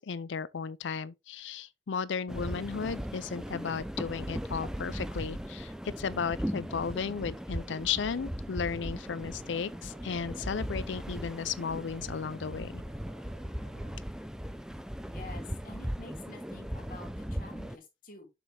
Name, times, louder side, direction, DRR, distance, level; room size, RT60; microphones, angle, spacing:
voice 1, 0.0-12.8, left 6 dB, 80° left, 0.5 m, -35 dB
sailboat underway, 2.3-17.8, equal, 5° right, 0.4 m, -38 dB
sound 1, 8.4-14.0, right 3 dB, 85° right, 3.9 m, -54 dB
voice 2, 15.1-18.3, left 2 dB, 45° left, 2.3 m, -48 dB
6.8 x 5.5 x 3.4 m
head